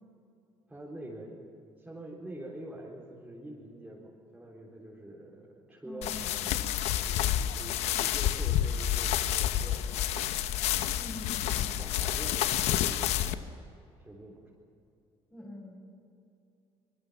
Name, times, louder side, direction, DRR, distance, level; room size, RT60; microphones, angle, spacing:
voice 1, 0.7-1.3 1.8-6.2 7.0-10.3 11.5-13.5 14.0-14.4, right 1 dB, 10° right, -5 dB, 4.2 m, -46 dB
voice 2, 5.8-7.3 11.0-11.8 15.3-15.8, left 1 dB, 10° left, -5 dB, 6.4 m, -46 dB
sound 1, 6.0-13.3, left 11 dB, 80° left, 1.0 m, -29 dB
25.0 x 22.5 x 7.1 m, 2.7 s
cardioid pair, 110°, 11 cm